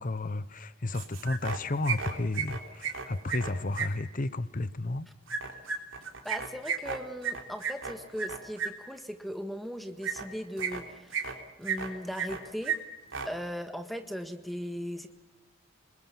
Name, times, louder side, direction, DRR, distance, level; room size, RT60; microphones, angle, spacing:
voice 1, 0.0-5.1, left 2 dB, 45° left, 0.9 m, -32 dB
sound 1, 0.9-1.6 1.8-3.9 5.3-8.7 10.0-10.2 10.6-11.3 11.6-12.4 12.6-12.8 13.0-13.3, right 6 dB, 75° right, 3.6 m, -33 dB
voice 2, 6.2-11.3 11.6-12.8 13.2-15.1, equal, ahead, 1.6 m, -38 dB
27.5 x 21.0 x 7.2 m
head